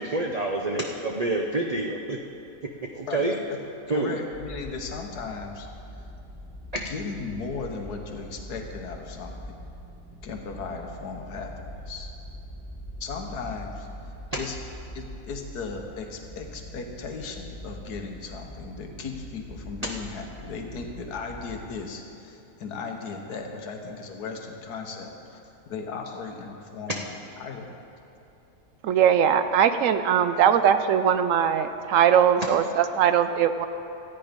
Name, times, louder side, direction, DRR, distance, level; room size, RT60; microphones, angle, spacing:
voice 1, 0.0-2.2 2.9-3.3 3.9-4.1, right 2 dB, 45° right, 1 dB, 0.5 m, -27 dB
voice 2, 3.1-3.6 3.9-5.7 6.8-9.3 10.2-11.5 11.8-12.1 13.0-14.6 14.9-27.0 27.4-27.8, left 4 dB, 85° left, 3 dB, 1.6 m, -36 dB
sound 1, 4.3-21.7, equal, 10° right, 1.1 m, -43 dB
voice 3, 28.8-33.7, right 8 dB, 70° right, 10 dB, 0.8 m, -20 dB
13.5 x 9.1 x 5.2 m, 2.9 s
omnidirectional pair, 1.6 m